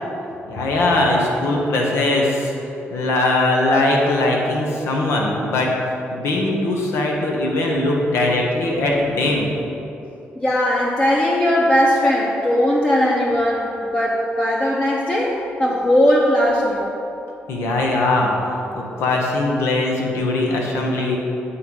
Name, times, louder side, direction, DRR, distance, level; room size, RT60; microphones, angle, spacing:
voice 1, 0.5-2.5 2.9-5.7 6.1-9.5 17.5-18.3 18.7-21.2, left 2 dB, 80° left, -1 dB, 1.1 m, -20 dB
voice 2, 10.4-16.9, left 1 dB, 25° left, -3 dB, 0.8 m, -18 dB
8.3 x 3.3 x 5.5 m, 2.9 s
cardioid pair, 75°, 4 cm